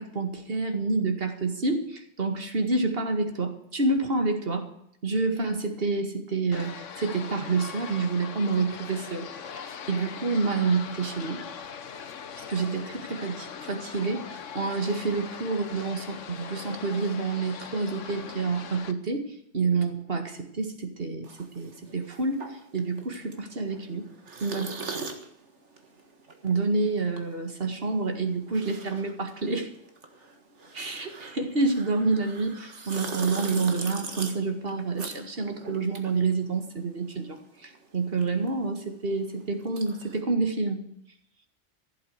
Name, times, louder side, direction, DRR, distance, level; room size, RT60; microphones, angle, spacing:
voice 1, 0.0-4.7 5.0-9.3 9.6-11.4 12.4-19.3 19.5-24.1 24.4-24.7 26.4-29.7 30.7-40.8, right 3 dB, 50° right, 5 dB, 2.1 m, -28 dB
sound 1, 6.5-18.9, left 7 dB, 80° left, 1.3 m, -41 dB
sound 2, 21.2-37.0 37.3-40.2, right 4 dB, 70° right, 2.0 m, -41 dB
15.0 x 8.1 x 8.0 m, 0.73 s
omnidirectional pair, 1.3 m